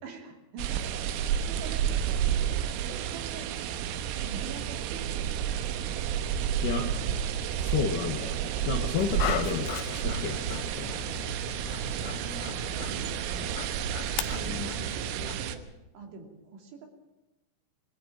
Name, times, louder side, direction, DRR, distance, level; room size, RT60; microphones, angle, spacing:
voice 1, 0.0-3.8 4.2-5.3 11.8-13.5 14.2-15.6 15.9-16.9, right 4 dB, 65° right, 3 dB, 5.0 m, -45 dB
sound 1, 0.6-15.6, right 9 dB, 90° right, 3.7 m, -31 dB
voice 2, 7.6-8.4 8.6-9.7 10.0-11.0 14.5-14.7, left 6 dB, 60° left, 2 dB, 2.3 m, -31 dB
Dog, 9.0-15.4, left 10 dB, 80° left, 2.2 m, -38 dB
21.5 x 14.5 x 9.0 m, 0.99 s
omnidirectional pair, 5.8 m